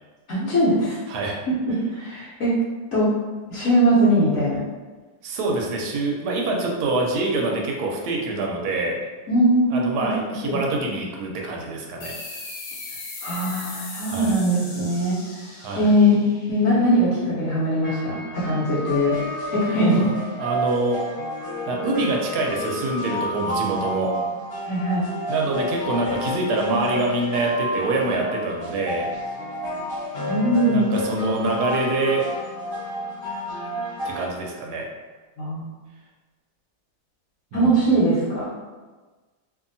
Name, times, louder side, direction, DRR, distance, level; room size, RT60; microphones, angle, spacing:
voice 1, 0.3-1.0 1.6-2.5 2.9-3.1 3.5-4.6 9.3-10.1 10.4-10.6 13.2-15.2 15.8-16.2 16.5-19.2 19.5-20.1 24.7-25.1 30.3-31.0 35.4-35.7 37.5-38.6, equal, 60° left, -8 dB, 1.1 m, -21 dB
voice 2, 1.1-1.4 5.2-9.0 9.7-12.2 14.0-14.3 15.6-15.9 19.7-20.1 20.4-21.0 21.7-24.1 25.3-29.1 30.7-32.3 34.0-34.9 37.5-37.8, right 2 dB, 75° right, 0 dB, 1.1 m, -25 dB
sound 1, 12.0-17.2, left 3 dB, 85° left, 1.3 m, -38 dB
sound 2, 17.8-34.3, equal, 35° left, 1.1 m, -30 dB
2.7 x 2.6 x 2.6 m, 1.3 s
omnidirectional pair, 1.8 m